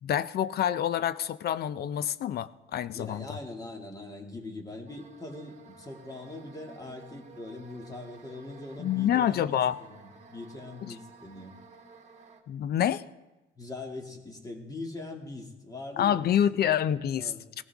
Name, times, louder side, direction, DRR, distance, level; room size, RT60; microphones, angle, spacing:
voice 1, 0.0-3.4 8.8-9.8 10.9-11.0 12.5-13.0 16.0-17.6, left 10 dB, 50° left, 16 dB, 0.5 m, -27 dB
voice 2, 2.9-11.6 13.6-16.3 17.2-17.5, left 2 dB, 20° left, 2 dB, 2.2 m, -42 dB
sound 1, 4.9-12.4, right 4 dB, 35° right, 1.5 m, -53 dB
18.0 x 15.0 x 3.5 m, 1.1 s
cardioid pair, 115°, 20 cm